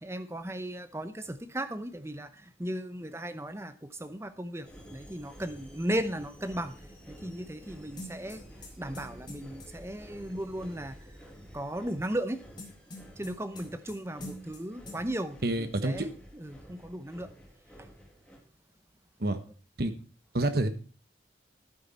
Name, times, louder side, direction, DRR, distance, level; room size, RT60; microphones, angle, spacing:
voice 1, 0.0-2.3 2.6-6.7 7.1-8.4 8.8-11.0 11.5-12.4 13.2-17.3, right 1 dB, 15° right, 0.7 m, -36 dB
sound 1, 4.6-18.4, equal, 5° left, 2.2 m, -51 dB
sound 2, 8.0-9.7 12.6-14.0 14.2-14.6 14.9-15.0, left 1 dB, 25° left, 2.4 m, -44 dB
voice 2, 15.4-16.1 19.2-19.4 19.8-19.9 20.3-20.7, right 2 dB, 55° right, 1.2 m, -28 dB
11.5 x 9.3 x 4.3 m
head